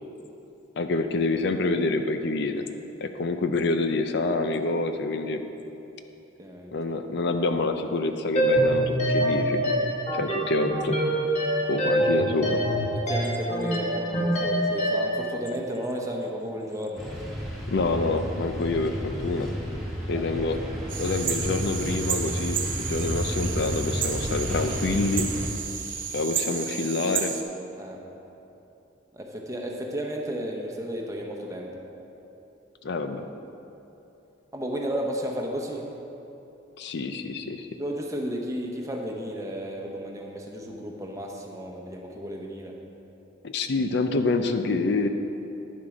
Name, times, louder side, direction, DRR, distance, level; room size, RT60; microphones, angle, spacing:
voice 1, 0.8-2.6 3.0-5.4 6.7-9.6 10.1-11.0 11.7-12.6 17.7-19.5 20.1-20.6 21.0-25.3 26.1-27.3 32.8-33.3 36.8-37.7 43.4-45.1, left 3 dB, 60° left, 7 dB, 0.5 m, -27 dB
voice 2, 6.4-6.7 12.9-17.1 20.1-20.6 27.8-28.0 29.1-31.7 34.5-35.9 37.8-42.8, equal, 15° right, 0 dB, 0.9 m, -33 dB
sound 1, 8.4-15.2, right 1 dB, 35° left, 1.6 m, -25 dB
sound 2, 17.0-25.5, equal, ahead, 2.4 m, -32 dB
sound 3, 20.9-27.4, right 7 dB, 45° right, 0.8 m, -32 dB
10.5 x 7.5 x 5.0 m, 3.0 s
head